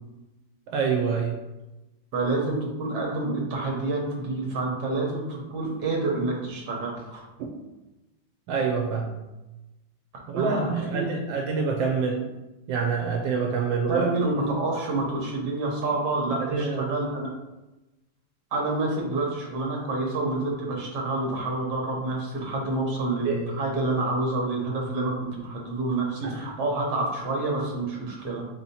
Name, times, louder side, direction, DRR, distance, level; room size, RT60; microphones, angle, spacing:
voice 1, 0.7-1.3 8.5-9.1 10.3-12.3 12.7-14.1 16.4-17.0 23.3-23.4 26.2-26.4, right 5 dB, 90° right, 1 dB, 1.3 m, -26 dB
voice 2, 2.1-7.2 10.3-11.2 13.9-17.3 18.5-28.4, right 2 dB, 65° right, -1 dB, 1.6 m, -28 dB
4.1 x 2.9 x 4.1 m, 1.0 s
omnidirectional pair, 2.0 m